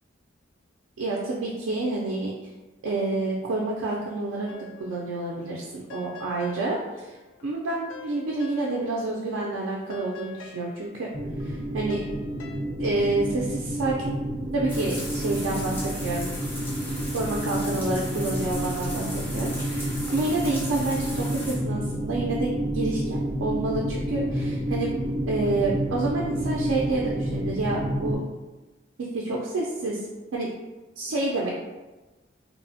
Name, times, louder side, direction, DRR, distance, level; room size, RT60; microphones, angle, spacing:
voice 1, 1.0-2.5 2.8-4.5 4.8-7.2 7.4-11.1 11.4-12.0 12.8-14.2 14.5-16.3 17.1-24.9 25.3-28.2 29.1-30.0 30.3-30.5 31.0-31.5, right 2 dB, 90° right, -3 dB, 0.4 m, -28 dB
sound 1, 4.5-5.1 5.4-9.1 9.4-12.6, left 3 dB, 75° left, 0.3 m, -46 dB
sound 2, 11.1-28.2, right 1 dB, 50° right, 0.7 m, -29 dB
sound 3, 14.7-21.6, equal, 10° left, 0.5 m, -38 dB
2.9 x 2.0 x 2.6 m, 1.2 s
head